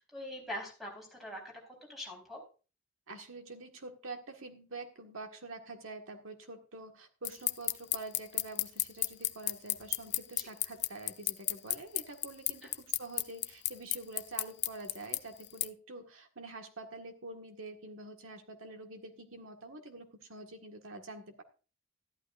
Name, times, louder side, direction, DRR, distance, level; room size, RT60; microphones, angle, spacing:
voice 1, 0.0-2.4 12.6-12.7, left 1 dB, ahead, -1 dB, 4.3 m, -43 dB
voice 2, 3.1-21.4, right 2 dB, 90° right, 4 dB, 1.7 m, -46 dB
sound 1, 7.2-15.7, left 16 dB, 55° left, 0.5 m, -31 dB
13.5 x 11.5 x 2.5 m, 0.34 s
head